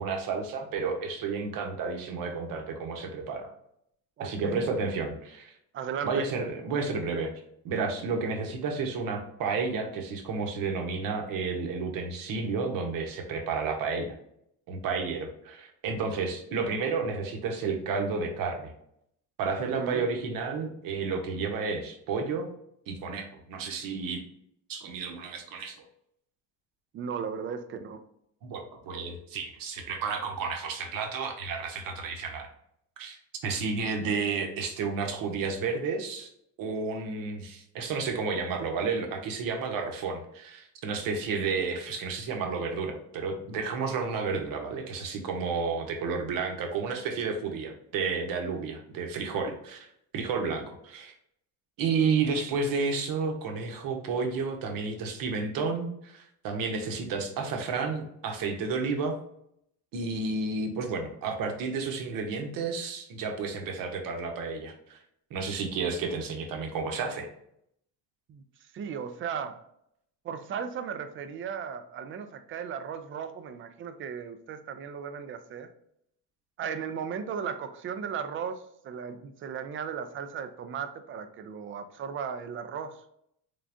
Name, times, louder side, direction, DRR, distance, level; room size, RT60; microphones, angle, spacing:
voice 1, 0.0-3.5 4.2-5.5 6.0-7.3 7.6-14.1 14.7-18.7 19.4-22.5 22.9-24.2 24.7-25.7 28.4-32.5 33.0-36.3 36.6-51.1 51.8-59.2 59.9-65.0 65.3-67.3, right 4 dB, 60° right, 3 dB, 0.9 m, -31 dB
voice 2, 4.2-4.6 5.7-6.2 19.6-20.1 26.9-28.0 68.3-68.4 68.7-69.6 70.2-75.7 76.6-83.0, right 7 dB, 35° right, 9 dB, 0.4 m, -36 dB
3.8 x 3.5 x 2.5 m, 0.73 s
cardioid pair, 130°, 39 cm